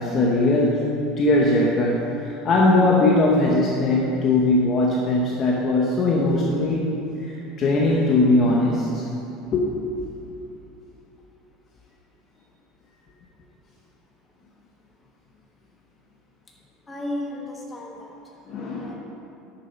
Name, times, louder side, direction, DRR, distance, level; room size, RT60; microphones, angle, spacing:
voice 1, 0.0-6.9 7.2-9.0 9.5-9.7 18.5-19.0, left 2 dB, 30° left, -2 dB, 0.9 m, -20 dB
voice 2, 16.9-18.1 18.8-19.0, left 1 dB, 15° left, -2 dB, 1.3 m, -33 dB
9.0 x 6.9 x 5.4 m, 2.8 s
cardioid pair, 160°, 0 cm